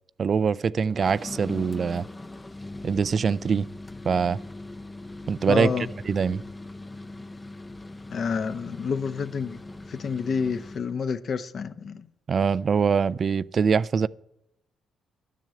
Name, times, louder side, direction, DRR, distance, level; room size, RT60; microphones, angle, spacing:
voice 1, 0.2-2.1 2.8-3.7 4.1-4.4 5.3-5.7 6.1-6.4 12.3-14.1, right 6 dB, 45° right, 0.3 m, -23 dB
sound 1, 0.9-10.9, left 2 dB, 15° left, 0.5 m, -40 dB
voice 2, 5.5-5.9 8.1-9.6 9.9-12.1, left 5 dB, 50° left, 0.8 m, -29 dB
12.0 x 7.5 x 7.7 m
cardioid pair, 90°, 0 cm